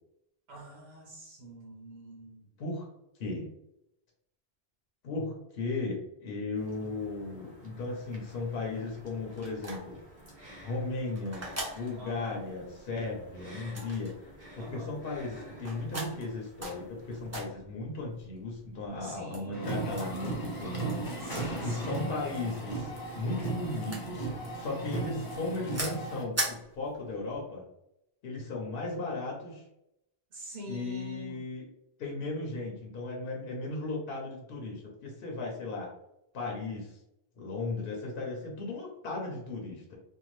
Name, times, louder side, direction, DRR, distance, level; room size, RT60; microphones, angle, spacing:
voice 1, 0.5-2.5 11.9-12.5 14.6-14.9 19.0-19.9 21.2-22.3 30.3-31.4, equal, 80° right, -3 dB, 1.0 m, -46 dB
voice 2, 5.0-10.0 10.6-20.9 21.6-27.6 28.2-29.6 30.7-31.7 32.0-35.9 36.3-37.0 37.4-40.0, left 2 dB, 70° left, -2 dB, 0.8 m, -36 dB
sound 1, 6.6-17.4, equal, 50° right, 1.1 m, -52 dB
sound 2, 8.1-27.4, right 1 dB, 20° right, 0.6 m, -42 dB
sound 3, 19.5-26.2, right 2 dB, 25° left, 0.5 m, -36 dB
2.7 x 2.2 x 3.0 m, 0.83 s
omnidirectional pair, 1.0 m